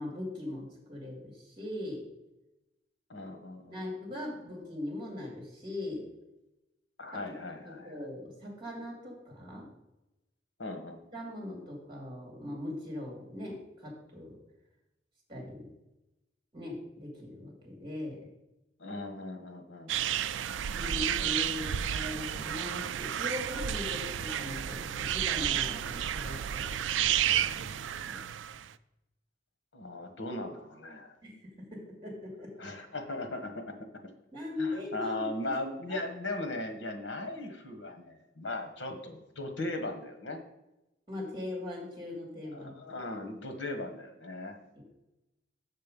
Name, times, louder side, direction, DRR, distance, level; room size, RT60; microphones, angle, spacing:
voice 1, 0.0-2.0 3.7-6.0 7.1-7.2 7.6-9.7 11.1-14.4 15.3-15.7 16.5-18.2 20.7-28.3 31.2-32.5 34.3-35.5 35.9-36.0 41.1-42.8 44.7-44.8, left 1 dB, 25° right, -1 dB, 3.0 m, -40 dB
voice 2, 3.1-3.8 4.4-4.5 7.0-8.1 10.6-11.0 18.8-19.9 29.7-31.2 32.6-33.8 34.0-34.1 34.6-40.4 42.5-44.6, left 2 dB, 75° left, 6 dB, 1.4 m, -38 dB
sound 1, 19.9-28.7, right 10 dB, 80° right, 0.4 m, -31 dB
6.7 x 6.6 x 5.3 m, 0.94 s
head